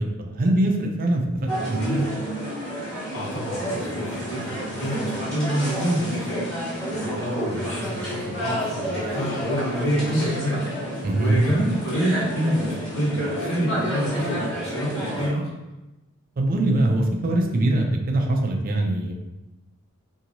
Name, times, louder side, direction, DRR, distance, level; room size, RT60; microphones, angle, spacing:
voice 1, 0.0-2.0 11.0-11.4 16.4-19.1, right 1 dB, 45° right, 2 dB, 0.4 m, -22 dB
sound 1, 1.5-15.3, equal, 5° left, 1.1 m, -30 dB
voice 2, 3.1-6.4 6.9-10.6 10.9-15.5, right 1 dB, 70° left, -8 dB, 1.5 m, -27 dB
2.9 x 2.7 x 2.6 m, 0.99 s
head